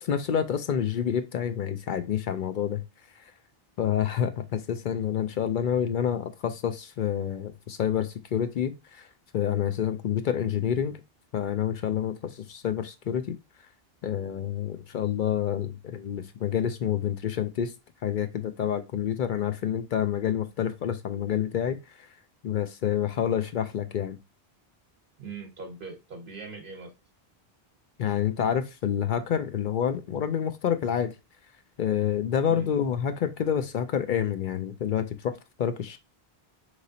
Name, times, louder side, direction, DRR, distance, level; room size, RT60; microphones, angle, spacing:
voice 1, 0.0-2.8 3.8-9.1 9.3-11.0 11.3-13.4 14.0-17.7 18.0-21.8 22.4-24.2 28.0-31.1 31.8-35.3 35.6-36.0, left 9 dB, 60° left, 0.6 m, -28 dB
voice 2, 25.2-26.9 32.5-32.7, right 4 dB, 60° right, 1.0 m, -41 dB
4.9 x 3.1 x 2.7 m
omnidirectional pair, 1.1 m